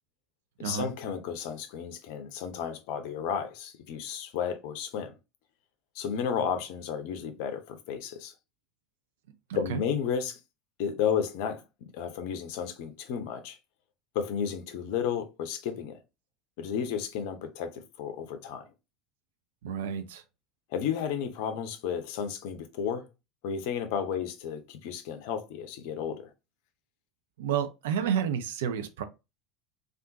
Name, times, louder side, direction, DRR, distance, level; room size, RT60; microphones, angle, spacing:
voice 1, 0.6-5.2 5.9-8.3 9.5-10.4 10.8-11.6 11.9-13.6 14.1-16.0 16.6-18.7 20.7-23.1 23.4-26.3, left 7 dB, 55° left, 0.6 m, -33 dB
voice 2, 9.5-9.8 19.6-20.2 27.4-29.0, right 8 dB, 65° right, 0.4 m, -30 dB
3.5 x 2.4 x 2.6 m
figure-of-eight pair, 70°, 0 cm